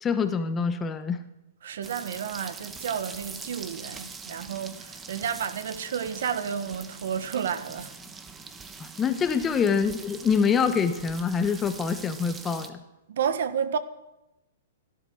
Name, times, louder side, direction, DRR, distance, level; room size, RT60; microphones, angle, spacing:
voice 1, 0.0-1.2 8.8-12.8, left 6 dB, 15° left, 1.1 m, -25 dB
voice 2, 1.6-7.9 13.1-13.8, right 7 dB, 70° right, 1.3 m, -31 dB
sound 1, 1.8-12.7, right 4 dB, 15° right, 1.2 m, -43 dB
17.0 x 11.5 x 6.3 m
hypercardioid pair, 145°, 0 cm